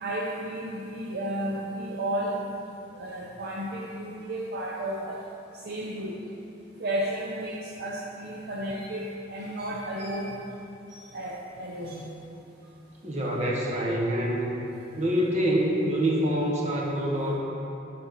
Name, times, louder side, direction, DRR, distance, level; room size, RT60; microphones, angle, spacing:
voice 1, 0.0-2.5 2.9-5.2 5.5-6.2 6.8-10.4 10.9-12.1, right 1 dB, 55° right, -3 dB, 0.6 m, -33 dB
voice 2, 13.0-14.5 15.0-17.3, right 1 dB, 35° right, -3 dB, 1.2 m, -26 dB
11.0 x 4.3 x 4.1 m, 2.9 s
head